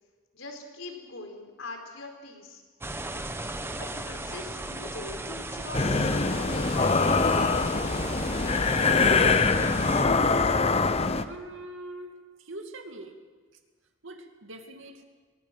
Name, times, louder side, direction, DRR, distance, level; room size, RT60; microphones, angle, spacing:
voice 1, 0.3-2.6 3.7-7.7, left 2 dB, 90° left, 3 dB, 4.6 m, -42 dB
sound 1, 2.8-10.0, right 2 dB, 10° right, 1.0 m, -36 dB
sound 2, 5.7-11.2, left 4 dB, 30° left, 0.9 m, -23 dB
voice 2, 11.2-13.2 14.0-15.0, right 1 dB, 80° right, 4 dB, 2.5 m, -43 dB
22.5 x 19.0 x 7.5 m, 1.5 s
head